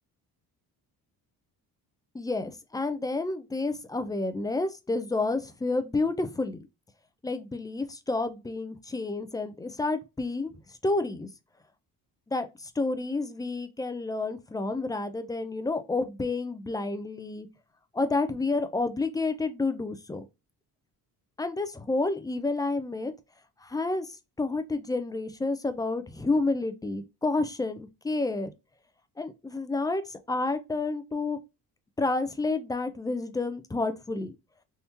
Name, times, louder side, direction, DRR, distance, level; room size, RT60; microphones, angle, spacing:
voice 1, 2.1-6.6 7.2-10.5 10.8-11.3 12.3-17.5 17.9-20.3 21.4-23.1 23.6-24.1 24.4-28.5 29.2-31.4 32.0-34.3, left 3 dB, 10° left, 0.4 m, -30 dB
3.5 x 2.7 x 2.7 m
cardioid pair, 135°, 37 cm